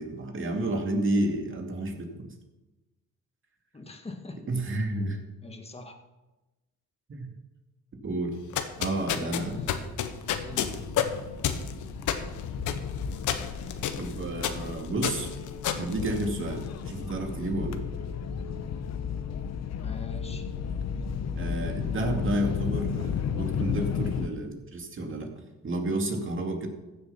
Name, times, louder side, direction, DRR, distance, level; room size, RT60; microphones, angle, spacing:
voice 1, 0.0-2.3 4.5-5.2 7.1-7.3 8.0-8.4 8.8-9.6 14.0-15.3 15.7-17.8 21.4-26.7, right 1 dB, 40° right, 3 dB, 2.5 m, -31 dB
voice 2, 3.7-4.4 5.4-5.9 9.1-10.0 10.4-10.9 19.7-20.5, left 2 dB, 20° left, 4 dB, 1.9 m, -43 dB
sound 1, 8.4-16.8, left 9 dB, 80° left, 1.2 m, -31 dB
sound 2, 9.1-23.0, right 3 dB, 60° right, 2.3 m, -46 dB
sound 3, 10.3-24.3, left 7 dB, 60° left, 1.0 m, -34 dB
15.0 x 7.1 x 5.8 m, 1.1 s
cardioid pair, 90°, 30 cm